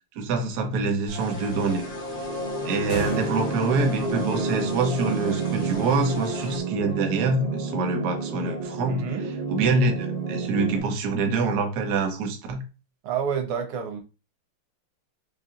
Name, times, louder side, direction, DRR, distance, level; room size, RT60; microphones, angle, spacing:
voice 1, 0.2-1.8 2.6-9.0 9.5-12.6, right 3 dB, 65° right, 1.1 m, -25 dB
sound 1, 1.1-6.6, equal, 45° left, 1.3 m, -40 dB
sound 2, 1.2-10.8, right 3 dB, 35° right, 0.9 m, -30 dB
sound 3, 2.7-4.0, left 3 dB, 80° left, 1.7 m, -38 dB
voice 2, 8.9-9.3 13.0-14.0, right 7 dB, 85° right, 1.8 m, -29 dB
5.4 x 2.6 x 2.5 m
omnidirectional pair, 2.4 m